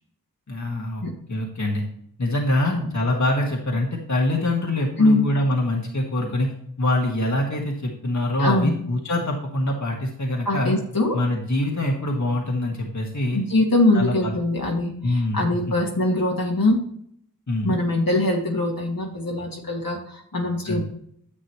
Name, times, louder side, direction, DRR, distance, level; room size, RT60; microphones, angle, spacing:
voice 1, 0.5-1.0 1.3-1.8 2.2-6.5 6.8-10.7 11.1-13.4 13.9-14.4 15.0-15.4 17.5-17.8 20.6-20.8, left 1 dB, 55° left, 0 dB, 1.7 m, -24 dB
voice 2, 8.4-8.8 10.5-11.2 13.3-16.8 17.6-20.8, left 2 dB, 75° left, -1 dB, 2.0 m, -22 dB
10.0 x 7.3 x 3.1 m, 0.66 s
wide cardioid pair, 45°, 35 cm